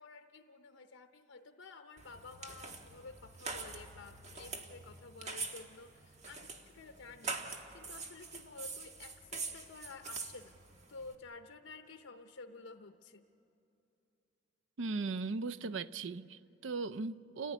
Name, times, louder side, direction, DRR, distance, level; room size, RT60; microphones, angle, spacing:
voice 1, 0.0-7.4 7.7-10.5 10.9-13.2, left 4 dB, 80° left, 6 dB, 0.8 m, -52 dB
sound 1, 2.0-11.1, right 4 dB, 35° right, 1.5 m, -45 dB
voice 2, 14.8-17.5, right 4 dB, 75° right, 13 dB, 0.5 m, -38 dB
29.0 x 15.0 x 9.9 m, 2.8 s
head